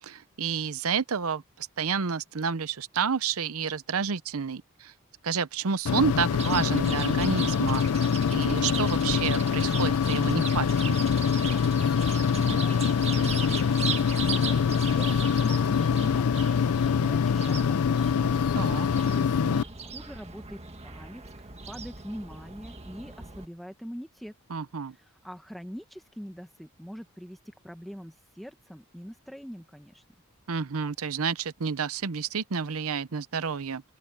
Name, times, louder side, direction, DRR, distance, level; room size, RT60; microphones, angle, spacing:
voice 1, 0.0-4.9 5.2-7.8 8.3-11.0 18.5-18.9 24.5-25.0 30.5-33.8, right 6 dB, 75° right, 0.7 m, -30 dB
sound 1, 5.9-19.6, left 6 dB, 85° left, 0.4 m, -24 dB
Chirp tweet, 6.3-23.5, right 5 dB, 30° right, 1.8 m, -38 dB
voice 2, 19.1-24.3 24.9-27.4 27.6-30.0, equal, ahead, 1.1 m, -43 dB
open air
head